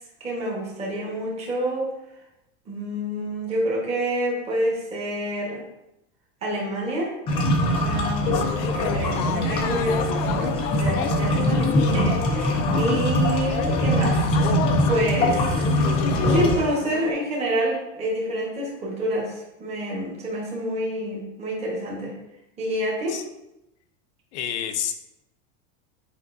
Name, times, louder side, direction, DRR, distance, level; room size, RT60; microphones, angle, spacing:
voice 1, 0.2-1.9 2.7-5.6 6.4-7.1 7.8-14.2 14.8-15.4 16.2-22.1 22.6-23.2, right 1 dB, 15° right, -4 dB, 1.3 m, -28 dB
sound 1, 7.3-16.5, equal, 15° left, 0.4 m, -23 dB
sound 2, 8.3-17.1, left 9 dB, 85° left, 0.6 m, -30 dB
voice 2, 24.3-24.9, left 9 dB, 60° left, 7 dB, 0.8 m, -28 dB
8.5 x 5.0 x 2.6 m, 0.88 s
supercardioid pair, 180°, 40 cm